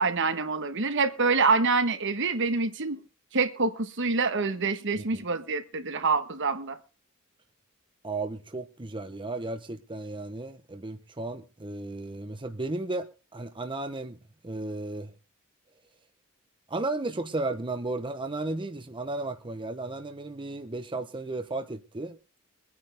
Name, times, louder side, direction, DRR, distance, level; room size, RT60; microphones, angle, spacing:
voice 1, 0.0-3.0 3.3-6.8, right 4 dB, 60° right, 1.3 m, -26 dB
voice 2, 8.0-15.1 16.7-22.2, right 2 dB, 25° right, 0.9 m, -34 dB
23.0 x 9.7 x 3.4 m
head